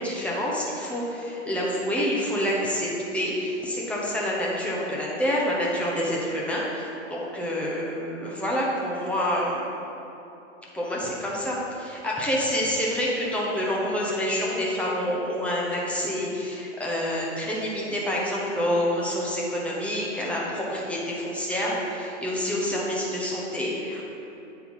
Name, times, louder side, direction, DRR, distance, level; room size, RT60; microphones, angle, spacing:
voice 1, 0.0-9.7 10.7-24.1, equal, 5° left, -5 dB, 1.1 m, -27 dB
8.2 x 4.6 x 5.5 m, 2.9 s
hypercardioid pair, 135°, 36 cm